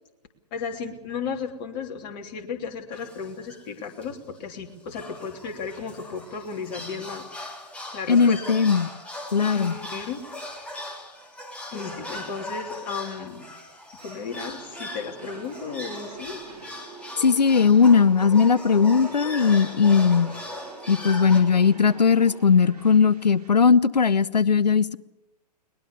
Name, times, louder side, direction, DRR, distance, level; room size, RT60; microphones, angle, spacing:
voice 1, 0.5-7.2 7.9-8.4 9.5-10.2 10.5-10.7 11.7-13.5 14.0-16.4, left 5 dB, 35° left, 2 dB, 3.2 m, -34 dB
sound 1, 2.9-3.7 4.0-4.1 4.3-4.5 4.9-21.4, left 1 dB, 5° left, 3.3 m, -39 dB
voice 2, 8.1-8.9 9.3-9.7 17.2-20.3 20.9-25.0, left 6 dB, 75° left, 20 dB, 0.7 m, -18 dB
sound 2, 14.0-23.5, right 3 dB, 70° right, 6.1 m, -53 dB
sound 3, 14.2-22.4, right 4 dB, 15° right, 4.5 m, -46 dB
22.0 x 20.5 x 7.1 m, 1.0 s
figure-of-eight pair, 120°, 21 cm